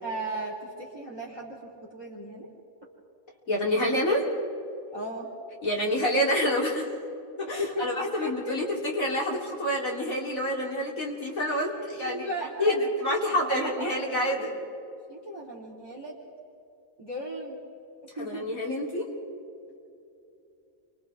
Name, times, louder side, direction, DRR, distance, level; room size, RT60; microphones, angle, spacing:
voice 1, 0.0-2.5 4.9-5.3 7.4-8.5 11.8-12.8 13.2-14.2 14.4-14.5 15.1-16.1 17.0-17.6 18.2-18.5, right 1 dB, 20° right, -5 dB, 3.4 m, -36 dB
voice 2, 3.5-4.3 5.6-6.9 7.4-12.3 12.6-14.5 18.2-19.1, equal, 90° left, -2 dB, 3.9 m, -27 dB
29.5 x 25.5 x 3.6 m, 2.7 s
omnidirectional pair, 1.4 m